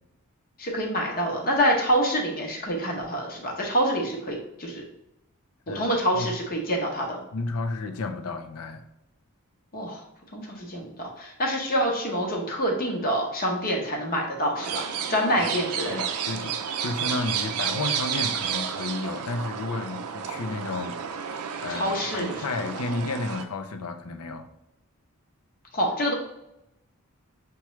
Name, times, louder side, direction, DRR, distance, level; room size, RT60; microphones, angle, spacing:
voice 1, 0.6-4.8 5.7-7.2 9.7-10.0 10.3-16.1 21.7-22.4 25.7-26.1, equal, 40° left, 0 dB, 0.8 m, -26 dB
voice 2, 7.3-8.9 15.9-21.0 21.3-24.5, left 3 dB, 75° left, 7 dB, 0.5 m, -32 dB
sound 1, 14.5-23.4, right 7 dB, 75° right, 0.4 m, -31 dB
5.7 x 2.2 x 3.0 m, 0.87 s
head